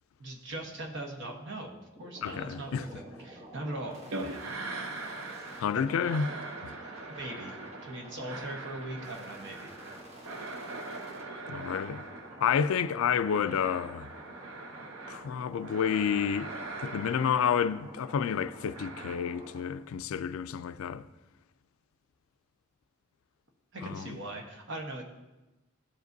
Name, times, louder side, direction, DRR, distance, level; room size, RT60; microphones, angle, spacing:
voice 1, 0.2-4.0 5.5-6.0 7.1-7.6 7.8-9.7 23.7-25.0, right 1 dB, 60° right, 1.1 m, -40 dB
sound 1, 2.0-19.7, right 1 dB, 30° right, 1.1 m, -49 dB
voice 2, 2.2-2.8 5.6-6.3 6.6-6.7 11.5-12.0 12.4-14.1 15.1-16.5 16.8-21.0 23.8-24.2, left 7 dB, 75° left, 0.3 m, -29 dB
sound 2, 4.1-5.7 6.0-15.3 15.6-18.0 18.7-19.2, right 3 dB, 85° right, 0.7 m, -42 dB
13.0 x 5.0 x 2.6 m
head